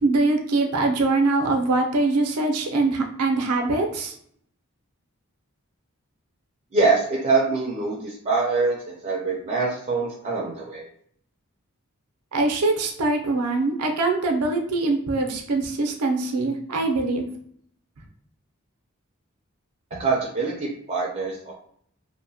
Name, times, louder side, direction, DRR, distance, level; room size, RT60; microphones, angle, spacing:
voice 1, 0.0-4.1 12.3-17.3, right 3 dB, 90° right, 3 dB, 0.5 m, -23 dB
voice 2, 6.7-10.9 20.0-21.5, right 4 dB, 30° right, -3 dB, 0.4 m, -24 dB
2.7 x 2.1 x 2.7 m, 0.65 s
head